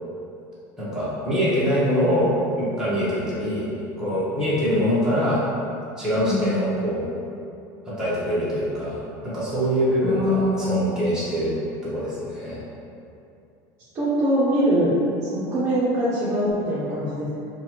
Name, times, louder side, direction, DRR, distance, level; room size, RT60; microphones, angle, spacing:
voice 1, 0.8-2.3 2.6-3.6 4.0-5.4 6.0-7.1 7.9-11.5 11.8-12.6, equal, 5° right, -11 dB, 1.0 m, -24 dB
voice 2, 6.2-6.5 10.0-11.0 13.9-14.9 15.2-17.3, equal, 25° right, -11 dB, 0.7 m, -23 dB
3.8 x 2.3 x 2.9 m, 2.7 s
supercardioid pair, 145°, 10 cm